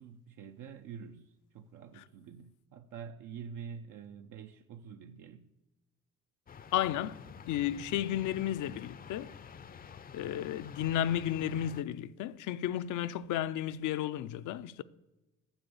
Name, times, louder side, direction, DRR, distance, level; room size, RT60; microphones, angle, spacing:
voice 1, 0.0-5.5, right 7 dB, 80° right, 0.6 m, -47 dB
sound 1, 6.5-11.8, left 6 dB, 30° left, 0.4 m, -49 dB
voice 2, 6.7-9.3 10.1-14.8, left 11 dB, 80° left, 0.5 m, -33 dB
10.5 x 7.0 x 6.8 m
cardioid pair, 90°, 30 cm